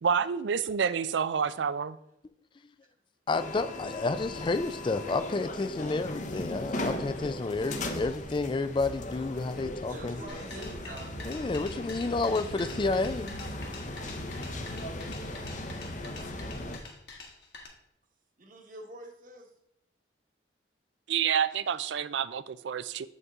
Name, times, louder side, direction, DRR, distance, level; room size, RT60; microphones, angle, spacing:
voice 1, 0.0-2.0 21.1-23.1, right 7 dB, 75° right, 16 dB, 0.4 m, -28 dB
sound 1, 3.3-16.8, left 1 dB, 40° left, 0.8 m, -38 dB
voice 2, 3.3-10.2 11.3-13.3, left 3 dB, 25° left, 13 dB, 0.3 m, -30 dB
voice 3, 9.8-11.8 12.2-12.9 13.7-15.6 18.4-19.5, right 1 dB, 45° right, 2 dB, 1.2 m, -48 dB
sound 2, 10.3-17.7, left 3 dB, 60° left, 1.6 m, -46 dB
8.0 x 5.3 x 3.6 m, 0.77 s
head